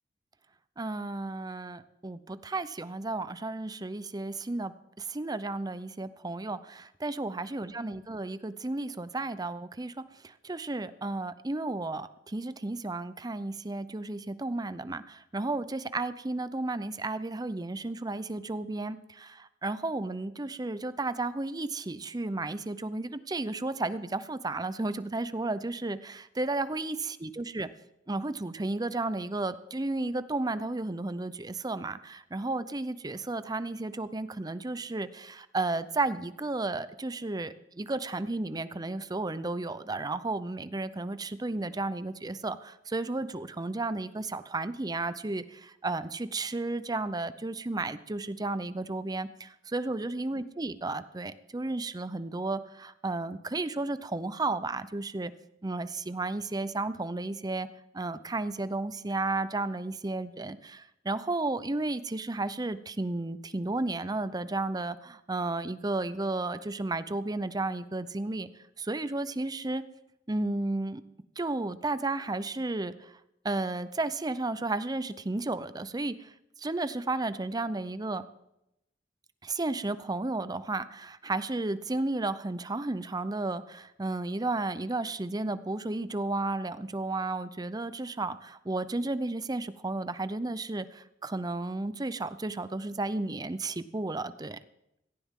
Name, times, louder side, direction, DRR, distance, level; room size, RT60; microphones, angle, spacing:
voice 1, 0.8-9.9 10.2-27.7 28.1-55.3 55.6-57.7 57.9-68.5 68.8-69.8 70.3-71.0 71.4-73.1 73.4-76.3 76.6-78.2 79.4-94.6, right 2 dB, 20° right, 14 dB, 0.6 m, -33 dB
17.5 x 15.0 x 3.7 m, 0.84 s
head